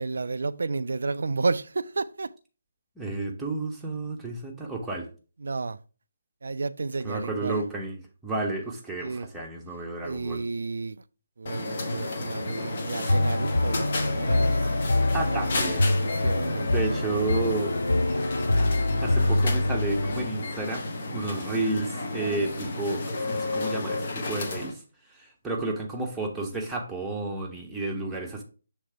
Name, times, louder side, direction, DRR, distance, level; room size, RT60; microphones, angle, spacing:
voice 1, 0.0-2.3 5.4-5.8 6.4-7.6 9.0-9.3 10.0-11.0 11.4-14.5 15.3-15.7 16.0-17.2, right 3 dB, 60° right, 0.3 m, -32 dB
voice 2, 3.0-5.1 7.0-10.4 15.1-15.9 16.6-17.8 19.0-23.0 23.3-24.8 25.1-28.4, right 2 dB, 5° right, 0.9 m, -31 dB
sound 1, 11.5-24.7, left 2 dB, 45° left, 1.1 m, -32 dB
sound 2, 13.1-20.3, left 2 dB, 70° left, 0.4 m, -25 dB
6.4 x 3.3 x 4.5 m
figure-of-eight pair, 145°, 0 cm